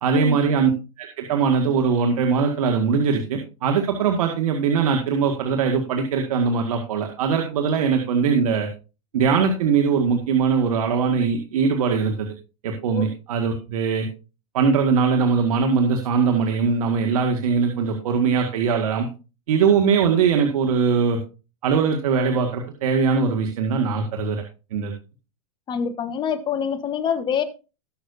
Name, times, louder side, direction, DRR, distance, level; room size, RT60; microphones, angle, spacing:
voice 1, 0.0-0.7 1.0-8.7 9.1-12.3 12.6-14.1 14.5-19.1 19.5-21.2 21.6-24.4 24.7-24.9, right 5 dB, 80° right, 2.0 m, -21 dB
voice 2, 25.7-27.4, left 7 dB, 25° left, 1.3 m, -25 dB
19.0 x 6.5 x 2.7 m
supercardioid pair, 135°, 18 cm